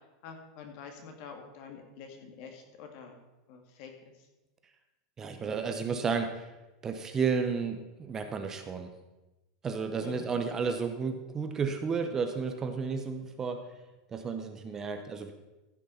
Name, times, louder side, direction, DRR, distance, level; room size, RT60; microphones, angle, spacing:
voice 1, 0.2-3.2 3.5-3.9 10.0-10.3, left 5 dB, 50° left, 4 dB, 2.2 m, -47 dB
voice 2, 5.2-6.5 6.8-8.9 9.6-13.6 14.1-15.3, right 5 dB, 20° right, 6 dB, 0.8 m, -32 dB
14.5 x 6.2 x 5.7 m, 1.1 s
supercardioid pair, 155°, 3 cm